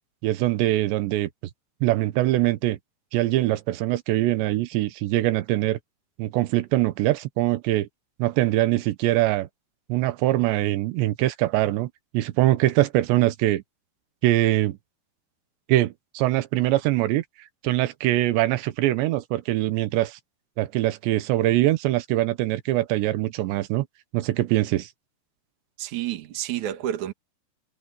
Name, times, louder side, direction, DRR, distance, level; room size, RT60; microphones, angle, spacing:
voice 1, 0.2-1.3 1.8-2.8 3.1-5.8 6.2-7.9 8.2-9.5 9.9-13.6 14.2-14.8 15.7-17.2 17.6-20.2 20.6-23.9 24.1-24.9, right 16 dB, 90° right, 3.3 m, -23 dB
voice 2, 25.8-27.1, right 12 dB, 55° right, 2.7 m, -29 dB
omnidirectional pair, 4.9 m